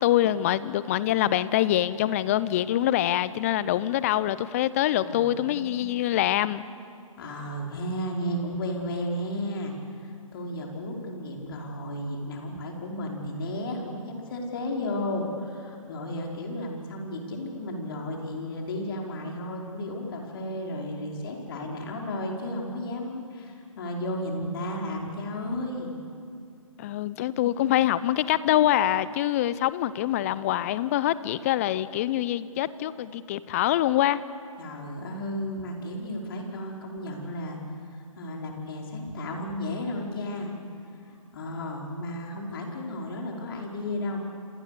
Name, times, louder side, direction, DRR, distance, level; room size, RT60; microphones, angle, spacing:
voice 1, 0.0-6.6 26.8-34.2, left 13 dB, 25° left, 17 dB, 0.7 m, -25 dB
voice 2, 5.0-5.8 7.2-9.7 10.0-25.9 34.6-37.6 38.2-40.5 41.3-44.2, left 1 dB, 40° left, 0 dB, 5.1 m, -33 dB
27.5 x 27.5 x 6.9 m, 2.4 s
figure-of-eight pair, 135°, 18 cm